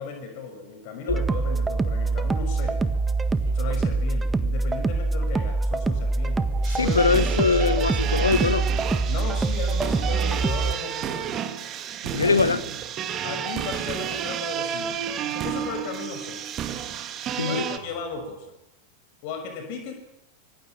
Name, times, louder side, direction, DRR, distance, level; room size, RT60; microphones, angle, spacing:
voice 1, 0.0-2.8 3.5-6.5 6.8-7.1 9.1-11.7 12.2-12.4 13.2-15.0 15.3-16.4 17.4-18.5 19.2-19.9, left 5 dB, 45° left, 6.2 m, -36 dB
sound 1, 1.1-10.7, right 3 dB, 10° right, 1.7 m, -24 dB
sound 2, 3.3-4.2 6.3-7.0 9.1-9.9 12.0-12.9 14.7-15.7 17.5-18.3, right 4 dB, 65° right, 5.4 m, -45 dB
sound 3, 6.6-17.8, right 9 dB, 30° right, 2.6 m, -31 dB
voice 2, 6.7-8.7 12.1-12.6 17.4-17.6, left 4 dB, 75° left, 1.7 m, -22 dB
25.5 x 24.5 x 9.0 m
figure-of-eight pair, 90°, 0 cm